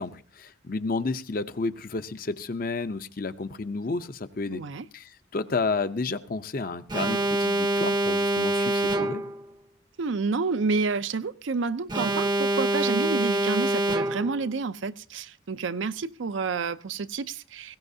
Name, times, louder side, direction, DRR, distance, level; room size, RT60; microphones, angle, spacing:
voice 1, 0.0-4.6 4.9-9.2, left 3 dB, 45° left, 0.6 m, -31 dB
voice 2, 4.5-4.9 10.0-17.8, right 4 dB, 70° right, 0.5 m, -29 dB
Alarm, 6.9-9.4 11.9-14.4, right 1 dB, 20° right, 0.6 m, -25 dB
19.5 x 16.5 x 2.7 m
head